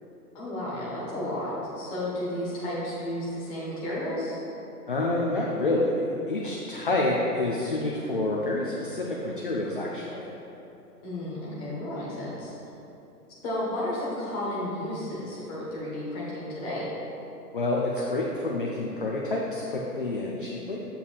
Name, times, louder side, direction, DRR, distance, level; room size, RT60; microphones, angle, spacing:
voice 1, 0.3-4.4 11.0-12.5 13.4-16.9, left 1 dB, 10° left, -7 dB, 0.8 m, -32 dB
voice 2, 4.9-10.3 17.5-20.8, left 2 dB, 35° left, -3 dB, 0.4 m, -28 dB
7.2 x 6.9 x 2.3 m, 2.9 s
figure-of-eight pair, 125°, 47 cm